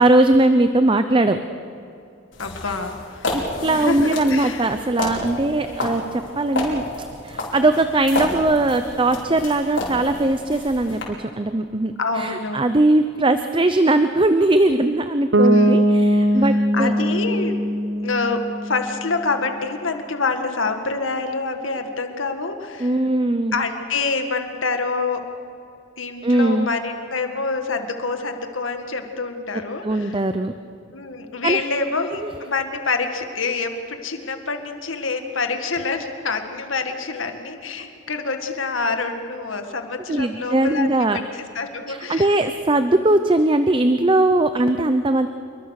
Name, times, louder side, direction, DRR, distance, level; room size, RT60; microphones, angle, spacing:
voice 1, 0.0-1.4 2.7-2.8 3.3-16.9 22.8-23.6 26.2-26.7 29.8-30.5 31.4-31.6 32.2-32.3 40.1-41.2 41.9-45.3, right 2 dB, 25° right, 9 dB, 0.7 m, -20 dB
sound 1, 2.3-11.0, left 2 dB, 70° left, 5.5 m, -30 dB
voice 2, 2.4-3.3 3.7-4.7 5.6-6.1 12.0-12.7 15.4-15.9 16.3-16.4 16.7-17.5 18.0-22.9 23.5-25.2 26.0-30.2 30.9-42.3 44.8-44.9, left 4 dB, 85° left, 6 dB, 2.0 m, -27 dB
Bass guitar, 15.3-19.2, equal, 70° right, 1.3 m, -20 dB
27.5 x 22.5 x 6.6 m, 2.7 s
head